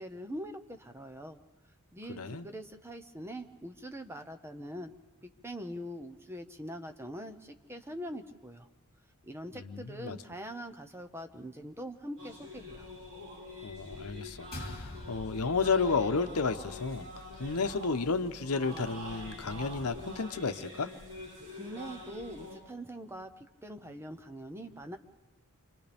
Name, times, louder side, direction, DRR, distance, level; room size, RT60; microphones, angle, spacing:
voice 1, 0.0-1.4 1.9-4.9 5.2-8.7 9.2-12.9 21.6-25.0, equal, 10° right, 6 dB, 0.8 m, -43 dB
voice 2, 2.1-2.5 9.5-10.2 13.6-17.1 17.4-20.9, left 4 dB, 85° left, 9 dB, 0.9 m, -32 dB
sound 1, 12.2-22.6, left 1 dB, 55° right, 7.0 m, -46 dB
sound 2, 14.5-19.1, left 2 dB, 45° left, 2.2 m, -47 dB
29.5 x 25.5 x 3.5 m, 1.2 s
head